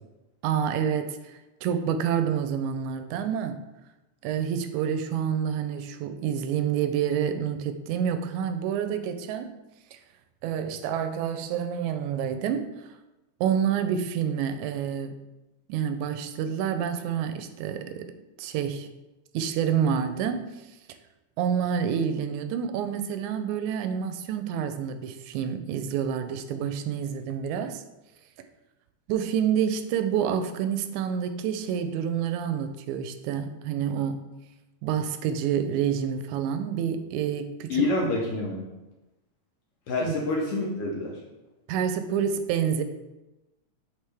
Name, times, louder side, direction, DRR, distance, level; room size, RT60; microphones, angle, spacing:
voice 1, 0.4-3.6 4.2-9.5 9.9-10.0 10.4-12.8 13.4-15.2 15.7-18.9 19.3-20.5 21.4-27.8 29.1-34.3 34.8-37.8 40.0-40.1 41.7-42.8, right 8 dB, 85° right, 2.0 m, -28 dB
voice 2, 37.7-38.7 39.9-41.1, left 2 dB, 65° left, 1.6 m, -27 dB
6.5 x 4.9 x 3.4 m
omnidirectional pair, 3.3 m